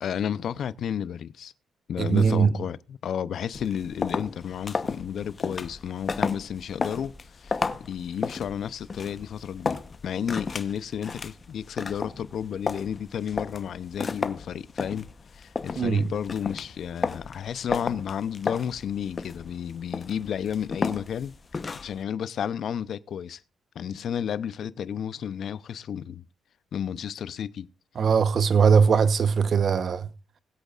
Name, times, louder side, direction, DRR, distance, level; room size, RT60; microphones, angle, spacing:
voice 1, 0.0-1.5 1.9-7.1 7.4-7.6 7.9-21.4 21.8-23.4 23.7-26.2 26.7-27.7, left 8 dB, 60° left, 0.6 m, -32 dB
voice 2, 2.0-2.5 15.8-16.0 28.0-30.1, right 6 dB, 50° right, 1.0 m, -20 dB
sound 1, 3.5-22.0, left 4 dB, 35° left, 0.9 m, -33 dB
20.0 x 8.1 x 2.5 m
cardioid pair, 90°, 0 cm